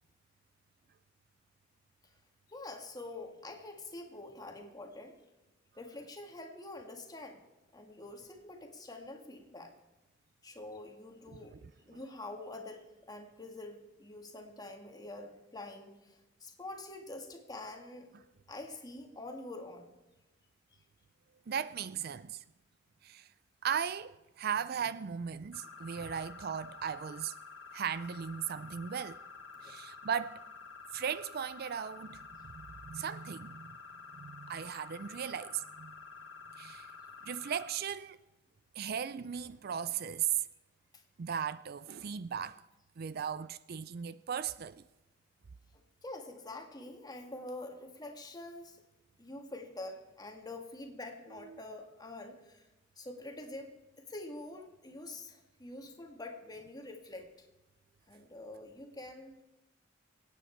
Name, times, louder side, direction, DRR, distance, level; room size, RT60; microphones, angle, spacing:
voice 1, 2.5-5.2 5.8-7.4 7.7-9.8 10.4-11.5 11.9-18.1 18.5-19.9 29.6-29.8 40.9-41.0 45.7-48.8 49.2-52.7 53.0-57.5 58.1-59.3, left 2 dB, 20° left, 1.8 m, -46 dB
voice 2, 11.3-11.7 21.5-22.4 23.0-23.3 23.6-27.4 27.7-29.2 29.6-30.4 30.9-33.7 34.2-35.9 36.5-36.9 37.3-38.2 38.8-40.4 41.2-42.6 43.0-44.8 51.5-51.6, right 8 dB, 55° right, 0.4 m, -37 dB
sound 1, 25.5-37.6, left 4 dB, 65° left, 2.2 m, -50 dB
24.5 x 9.2 x 4.5 m
head